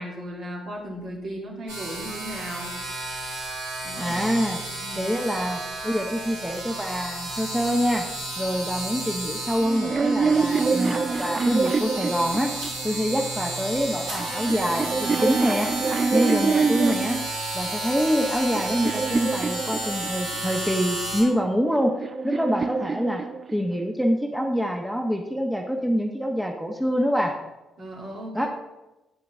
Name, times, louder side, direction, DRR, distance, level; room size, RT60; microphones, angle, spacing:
voice 1, 0.0-2.8 3.8-4.1 4.8-5.1 27.8-28.5, right 1 dB, 50° right, -2 dB, 2.6 m, -36 dB
sound 1, 1.7-21.2, right 2 dB, 75° right, 3.3 m, -32 dB
voice 2, 4.0-4.6 5.0-8.0 8.4-12.5 12.8-15.7 16.1-17.2 17.5-21.9 22.2-23.2 23.5-27.3 28.3-28.5, equal, ahead, 2 dB, 1.1 m, -25 dB
sound 2, 9.6-13.0 13.9-17.3 18.0-20.4 21.4-23.8, right 4 dB, 35° right, 0.4 m, -26 dB
9.2 x 9.1 x 3.6 m, 1.0 s
figure-of-eight pair, 40°, 0 cm